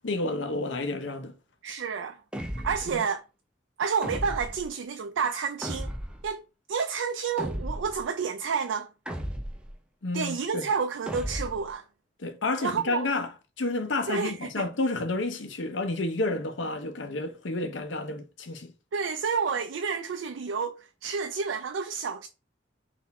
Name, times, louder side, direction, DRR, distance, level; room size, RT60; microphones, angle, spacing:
voice 1, 0.0-1.3 2.9-3.0 10.0-10.7 12.2-13.3 13.6-18.7, left 2 dB, 75° left, 0.8 m, -30 dB
voice 2, 1.6-2.2 2.6-3.2 3.8-5.9 6.2-6.4 6.7-8.9 10.1-11.8 12.6-13.1 14.1-14.7 18.9-22.3, right 5 dB, 85° right, 0.4 m, -30 dB
sound 1, 2.3-3.0 4.0-4.7 5.6-6.3 7.4-8.0 9.1-9.7 11.1-11.7, equal, 5° right, 0.6 m, -34 dB
4.0 x 2.6 x 4.1 m
head